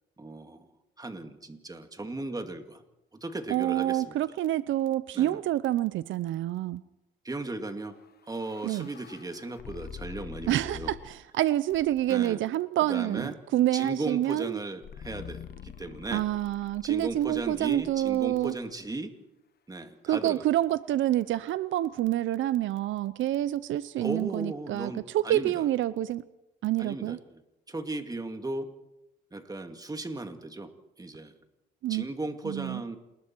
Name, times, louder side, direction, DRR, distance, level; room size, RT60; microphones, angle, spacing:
voice 1, 0.2-0.7 1.0-2.8 3.2-4.2 5.1-5.4 7.2-8.0 8.3-10.9 12.1-12.4 12.9-13.4 13.7-16.2 16.8-19.1 19.7-20.4 24.0-25.6 26.8-27.2 27.7-28.7 29.3-30.7 31.0-31.3 31.9-33.0, right 2 dB, 20° right, 6 dB, 2.4 m, -36 dB
voice 2, 3.5-6.8 8.6-8.9 10.5-14.6 16.1-18.5 20.0-26.2 26.6-27.2 31.8-32.1 32.4-32.8, right 13 dB, 80° right, 17 dB, 0.6 m, -27 dB
sound 1, 7.9-11.2 11.7-12.2 14.8-18.9, left 8 dB, 55° left, 1.2 m, -46 dB
28.0 x 20.5 x 4.6 m, 0.91 s
cardioid pair, 90°, 20 cm